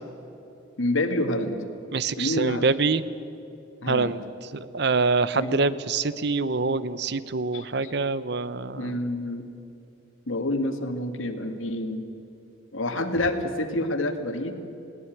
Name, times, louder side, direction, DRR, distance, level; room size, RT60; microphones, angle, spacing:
voice 1, 0.8-1.6 2.2-2.7 3.8-4.2 5.3-5.6 7.5-7.9 8.8-9.4 10.3-12.0 12.7-14.5, left 1 dB, 85° left, 7 dB, 2.0 m, -28 dB
voice 2, 1.9-3.0 3.9-4.2 4.5-9.0, right 4 dB, 55° right, 16 dB, 0.7 m, -25 dB
21.0 x 17.5 x 9.2 m, 2.8 s
head